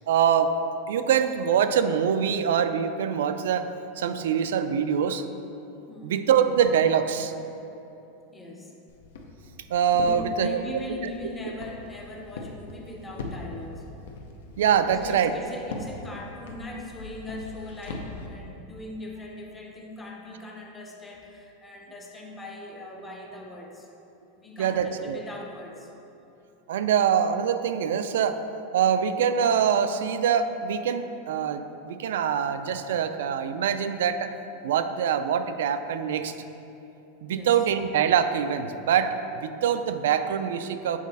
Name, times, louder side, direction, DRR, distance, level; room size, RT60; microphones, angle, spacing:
voice 1, 0.1-0.5 0.9-3.7 4.0-5.2 6.0-7.3 9.7-10.6 14.6-15.3 24.6-25.2 26.7-28.4 28.7-34.3 34.6-36.3 37.2-41.0, right 8 dB, 90° right, 9 dB, 0.3 m, -24 dB
voice 2, 5.9-6.2 8.3-8.7 9.9-13.9 14.8-23.9 24.3-25.9 37.3-37.6, left 1 dB, 10° left, -1 dB, 0.5 m, -40 dB
Walk footsteps, 8.9-18.3, left 3 dB, 85° left, 0.7 m, -41 dB
7.3 x 4.1 x 4.0 m, 2.9 s
supercardioid pair, 180°, 0 cm